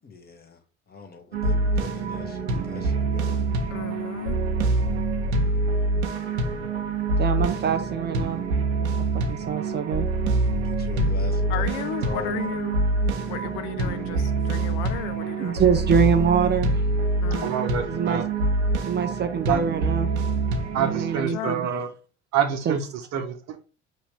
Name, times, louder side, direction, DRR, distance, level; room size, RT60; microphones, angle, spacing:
voice 1, 0.0-0.6 0.9-3.4 10.6-12.6, left 4 dB, 30° left, 1.2 m, -40 dB
sound 1, 1.3-21.2, right 3 dB, 75° right, 0.8 m, -25 dB
voice 2, 3.7-4.4 11.5-12.8 13.3-15.6 17.2-17.5 21.2-21.6, left 12 dB, 60° left, 0.5 m, -34 dB
voice 3, 7.2-8.4 9.3-10.1 15.4-16.7 17.9-18.2 18.9-20.1 20.8-21.7 22.7-22.8, right 7 dB, 30° right, 0.5 m, -24 dB
voice 4, 17.4-18.3 19.5-19.6 20.7-21.9 22.3-23.6, right 8 dB, 50° right, 0.9 m, -27 dB
4.9 x 3.0 x 3.2 m
hypercardioid pair, 60°, 34 cm